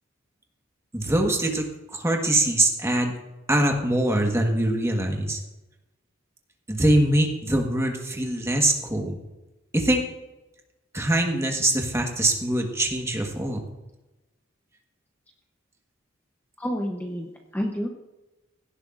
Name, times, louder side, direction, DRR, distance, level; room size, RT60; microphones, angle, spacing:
voice 1, 0.9-1.6 1.9-3.1 3.5-5.4 6.7-9.2 9.7-10.0 10.9-13.6, right 1 dB, 15° right, 2 dB, 1.4 m, -23 dB
voice 2, 16.6-17.9, equal, 10° left, 1 dB, 0.8 m, -29 dB
17.0 x 11.0 x 2.5 m, 1.0 s
head